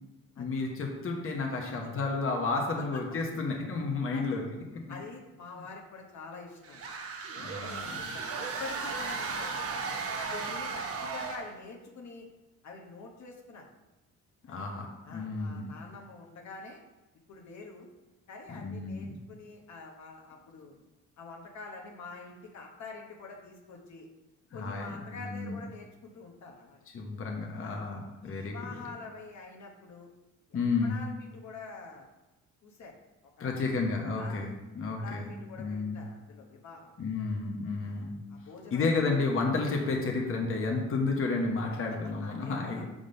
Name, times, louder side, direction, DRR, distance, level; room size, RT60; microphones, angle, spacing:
voice 1, 0.4-4.4 4.7-4.9 7.3-8.1 14.5-15.7 18.5-19.1 24.5-25.6 26.9-28.8 30.5-31.0 33.4-35.3 35.6-36.0 37.0-38.2 38.7-42.9, left 3 dB, 45° left, 1 dB, 1.1 m, -32 dB
voice 2, 4.9-6.8 7.5-9.7 10.3-12.3 12.6-13.8 14.5-14.7 15.0-16.8 17.3-17.9 18.3-20.7 21.2-24.1 24.5-26.8 27.6-27.8 28.2-30.1 30.8-32.1 32.6-33.0 33.4-33.8 34.1-34.5 35.0-36.9 37.8-39.0 41.7-42.8, left 4 dB, 65° left, -1 dB, 1.1 m, -46 dB
sound 1, 6.6-11.6, right 4 dB, 50° right, 0.9 m, -35 dB
5.2 x 3.9 x 5.1 m, 1.0 s
cardioid pair, 90°, 30 cm